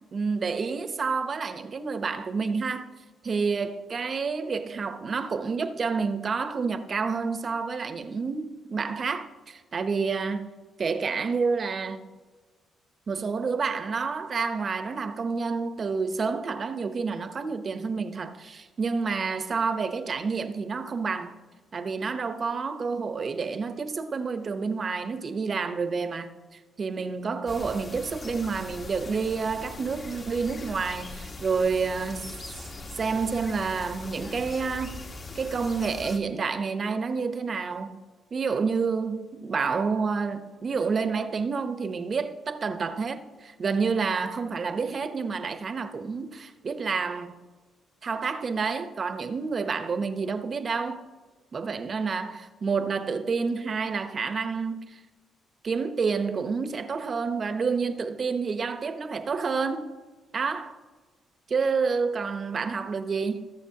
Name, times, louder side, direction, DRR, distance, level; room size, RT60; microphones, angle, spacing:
voice 1, 0.1-2.9 3.2-10.5 10.8-12.0 13.1-21.4 21.7-32.3 33.0-35.0 35.3-38.0 38.3-47.4 48.0-51.0 51.5-54.8 55.6-59.8 60.3-60.8 61.5-63.5, right 5 dB, 45° right, 0.9 m, -29 dB
sound 1, 27.5-36.2, left 2 dB, 40° left, 1.3 m, -41 dB
20.5 x 6.9 x 2.8 m
cardioid pair, 90°, 0 cm